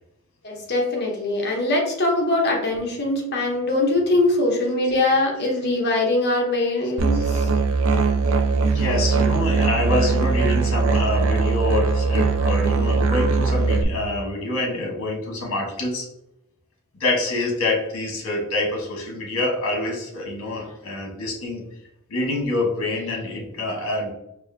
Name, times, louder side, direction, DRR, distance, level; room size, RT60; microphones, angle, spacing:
voice 1, 0.4-7.5, left 2 dB, 50° left, 0 dB, 0.9 m, -22 dB
Musical instrument, 7.0-13.8, right 4 dB, 65° right, 0.5 m, -20 dB
voice 2, 8.7-16.1 17.0-21.6 22.1-24.1, left 2 dB, 65° left, 0 dB, 1.3 m, -26 dB
4.7 x 2.6 x 2.7 m, 0.82 s
head